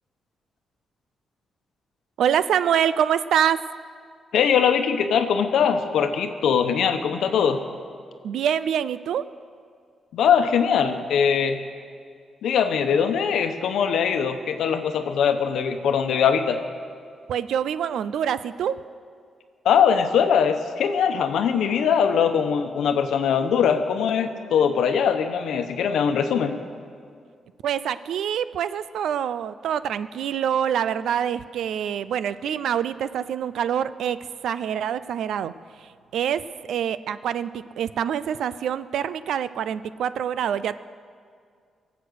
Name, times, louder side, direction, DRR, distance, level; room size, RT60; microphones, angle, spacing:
voice 1, 2.2-3.6 8.2-9.2 17.3-18.7 27.6-34.2 34.4-35.5 36.1-36.4 36.7-40.8, right 9 dB, 85° right, 15 dB, 0.4 m, -25 dB
voice 2, 4.3-7.6 10.1-11.6 12.4-16.6 19.6-26.6, left 7 dB, 90° left, 8 dB, 1.0 m, -21 dB
23.0 x 8.1 x 6.4 m, 2.2 s
wide cardioid pair, 165°, 0 cm